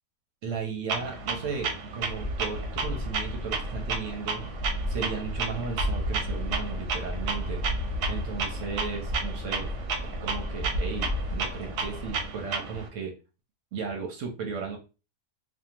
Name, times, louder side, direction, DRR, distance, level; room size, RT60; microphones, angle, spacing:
voice 1, 0.4-4.4 4.9-7.6 8.1-9.7 10.0-13.1 13.7-14.8, right 5 dB, 65° right, 2 dB, 0.8 m, -35 dB
Clock, 0.9-12.9, right 4 dB, 90° right, 1.2 m, -34 dB
sound 1, 2.0-12.3, left 1 dB, 55° left, 0.9 m, -33 dB
2.7 x 2.2 x 2.8 m, 0.30 s
omnidirectional pair, 1.6 m